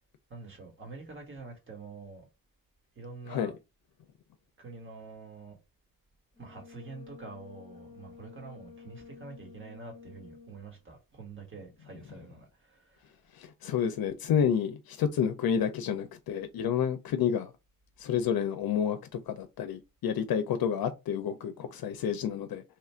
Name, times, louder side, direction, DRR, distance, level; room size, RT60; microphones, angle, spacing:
voice 1, 0.3-2.3 2.9-3.5 4.6-5.6 6.4-13.2, right 3 dB, 35° right, 1.5 m, -46 dB
Brass instrument, 6.4-10.7, left 5 dB, 20° left, 0.9 m, -51 dB
voice 2, 13.4-17.5 18.0-19.0 19.3-22.6, left 8 dB, 85° left, 0.5 m, -29 dB
3.1 x 2.4 x 4.2 m
wide cardioid pair, 150°, 35 cm